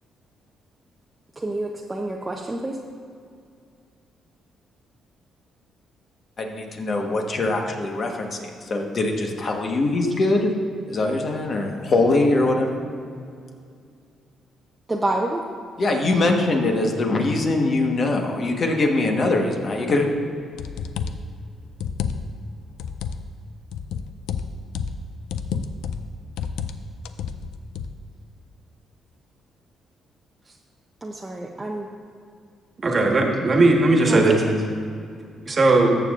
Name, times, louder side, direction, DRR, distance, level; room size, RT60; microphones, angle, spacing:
voice 1, 1.4-2.8 14.9-15.4 31.0-31.9 34.1-34.5, right 1 dB, 20° right, -1 dB, 0.7 m, -28 dB
voice 2, 6.4-10.5 10.9-12.8 15.8-20.1, left 2 dB, 45° left, 2 dB, 1.3 m, -22 dB
sound 1, 20.6-21.3 21.7-22.4 22.8-23.2 23.7-25.0 25.3-26.1 26.4-26.8 27.1-27.9, left 6 dB, 90° left, 0.4 m, -30 dB
voice 3, 32.8-34.4 35.5-36.0, right 2 dB, 35° right, 1 dB, 1.4 m, -17 dB
13.5 x 7.1 x 2.5 m, 2.3 s
cardioid pair, 90°, 0 cm